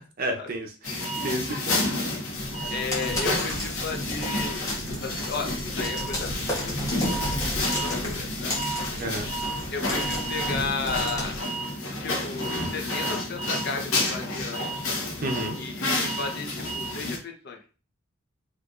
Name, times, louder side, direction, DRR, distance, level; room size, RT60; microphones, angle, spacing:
voice 1, 0.2-1.8 9.0-9.3 12.6-12.7 15.2-15.6, right 1 dB, 40° right, 3 dB, 0.6 m, -31 dB
Bustling grocery store checkout, 0.8-17.2, left 1 dB, 70° left, 1.0 m, -30 dB
sound 1, 2.3-11.4, equal, 15° left, 1.0 m, -34 dB
voice 2, 2.7-4.7 5.0-7.4 7.8-8.5 9.7-11.4 12.0-14.9 15.6-17.6, left 4 dB, 50° left, 3 dB, 0.6 m, -34 dB
sound 2, 3.1-5.8 6.5-6.6 7.7-7.8, right 2 dB, 10° right, 0.9 m, -48 dB
4.3 x 2.5 x 2.4 m, 0.36 s
head